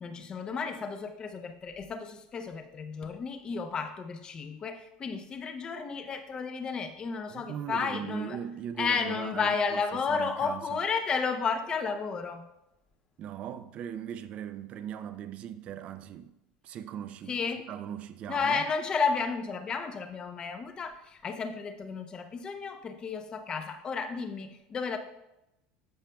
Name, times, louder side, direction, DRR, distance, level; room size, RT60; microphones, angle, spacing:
voice 1, 0.0-8.4 8.8-12.4 17.3-17.7 18.3-25.0, left 5 dB, 25° left, 0.7 m, -32 dB
voice 2, 7.3-9.8 10.1-10.8 13.2-16.4 16.6-17.4 17.7-18.6, right 9 dB, 40° right, 0.5 m, -39 dB
13.0 x 5.1 x 2.3 m
supercardioid pair, 135°, 3 cm